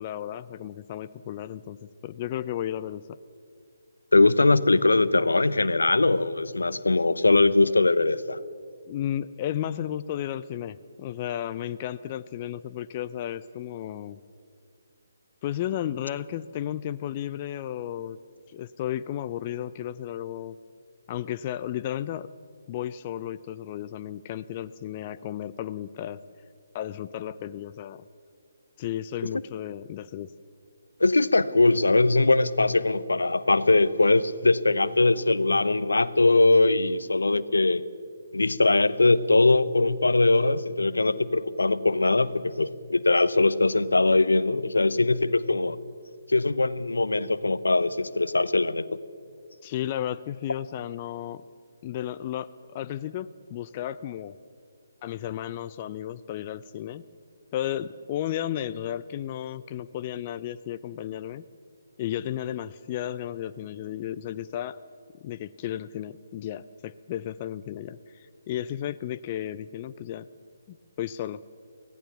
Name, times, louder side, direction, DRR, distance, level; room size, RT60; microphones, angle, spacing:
voice 1, 0.0-3.2 8.9-14.2 15.4-18.2 18.5-20.6 21.1-22.3 22.7-26.2 26.7-28.1 28.8-30.3 49.6-51.4 51.8-54.4 55.0-57.0 57.5-61.4 62.0-64.8 65.2-70.3 70.7-71.4, left 11 dB, 30° left, 13 dB, 0.5 m, -33 dB
voice 2, 4.1-8.4 29.3-29.4 31.0-37.8 38.3-45.8 46.3-48.9, left 2 dB, 80° left, 15 dB, 0.8 m, -21 dB
24.5 x 17.5 x 7.1 m, 2.3 s
figure-of-eight pair, 140°, 0 cm